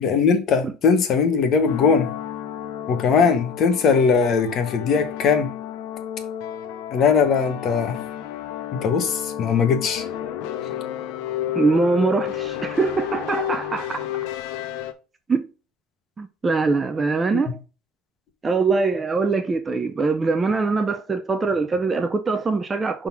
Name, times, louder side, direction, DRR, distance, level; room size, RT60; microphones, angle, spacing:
voice 1, 0.0-2.1 2.9-5.5 6.9-8.0 8.7-10.0 17.3-17.4, left 6 dB, 40° left, 1.2 m, -20 dB
sound 1, 1.7-14.9, left 11 dB, 80° left, 0.8 m, -31 dB
voice 2, 11.5-14.1 15.3-15.4 16.2-17.6 18.4-23.1, right 4 dB, 15° right, 0.5 m, -22 dB
5.6 x 3.8 x 5.9 m
cardioid pair, 165°, 0 cm